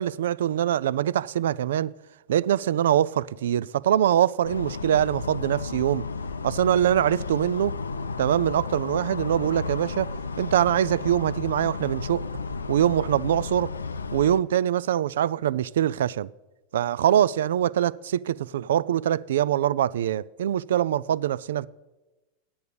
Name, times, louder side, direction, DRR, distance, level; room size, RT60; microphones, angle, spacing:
voice 1, 0.0-1.9 2.3-6.0 6.4-7.8 8.2-10.1 10.4-12.2 12.7-13.7 14.1-16.3 16.7-21.7, right 11 dB, 70° right, 0.3 m, -23 dB
sound 1, 4.4-14.4, left 4 dB, 90° left, 0.5 m, -33 dB
9.2 x 7.1 x 8.4 m
hypercardioid pair, 95°, 0 cm